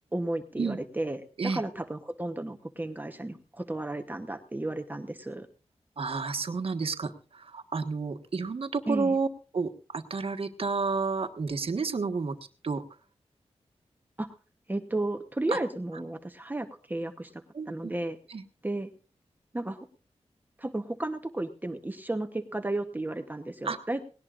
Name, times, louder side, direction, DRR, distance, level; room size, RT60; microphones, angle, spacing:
voice 1, 0.1-5.5 8.9-9.2 14.2-14.3 14.7-18.2 18.6-18.9 19.5-19.8 20.6-24.0, right 2 dB, 15° right, 7 dB, 0.9 m, -33 dB
voice 2, 6.0-9.3 9.5-12.4 12.6-12.8 15.5-15.6 17.5-17.9 18.3-18.4 23.6-23.8, right 4 dB, 60° right, 7 dB, 1.4 m, -30 dB
19.0 x 18.0 x 2.5 m, 0.37 s
wide cardioid pair, 115°, 11 cm